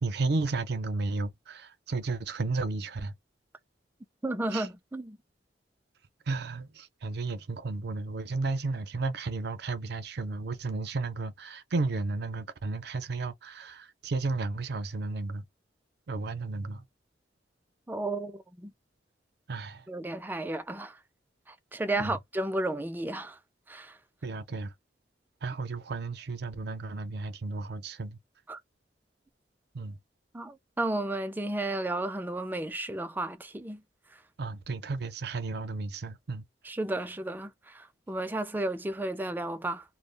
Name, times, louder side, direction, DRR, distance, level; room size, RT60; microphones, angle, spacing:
voice 1, 0.0-3.1 4.5-4.7 6.3-15.4 16.1-16.8 19.5-19.8 22.0-22.2 24.2-24.7 25.4-28.2 29.7-30.0 34.4-36.4, right 3 dB, 65° right, 0.5 m, -33 dB
voice 2, 4.2-5.2 17.9-18.7 19.9-21.0 21.7-23.4 23.7-24.0 28.5-28.6 30.3-33.8 36.7-39.8, right 2 dB, 10° right, 0.3 m, -33 dB
2.2 x 2.0 x 3.2 m
head